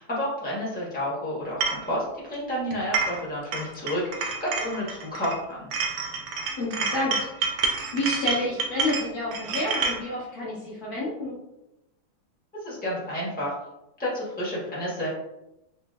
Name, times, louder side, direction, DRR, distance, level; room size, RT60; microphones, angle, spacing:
voice 1, 0.0-5.7 12.6-13.5 14.0-15.1, equal, 5° left, -7 dB, 0.6 m, -30 dB
sound 1, 1.6-1.8 2.7-3.2 3.5-5.4 5.7-10.0, right 4 dB, 75° right, 1.0 m, -28 dB
voice 2, 6.6-7.6 7.9-11.4, left 1 dB, 55° left, -6 dB, 1.2 m, -29 dB
5.0 x 2.5 x 2.3 m, 0.91 s
omnidirectional pair, 2.4 m